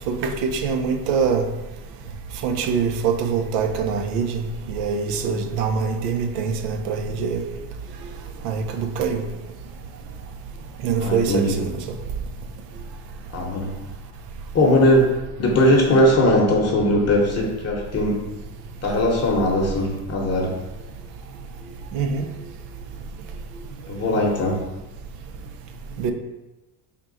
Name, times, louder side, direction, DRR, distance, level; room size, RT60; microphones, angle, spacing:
voice 1, 0.2-1.4 2.4-7.4 8.4-9.2 10.8-11.7 21.9-22.3 26.0-26.1, right 5 dB, 80° right, 6 dB, 0.6 m, -24 dB
voice 2, 11.0-11.6 13.3-13.7 14.5-15.1 15.4-18.2 18.8-20.5 23.9-24.6, left 1 dB, 30° left, -1 dB, 0.9 m, -19 dB
3.6 x 2.4 x 4.0 m, 1.1 s
supercardioid pair, 85°, 48 cm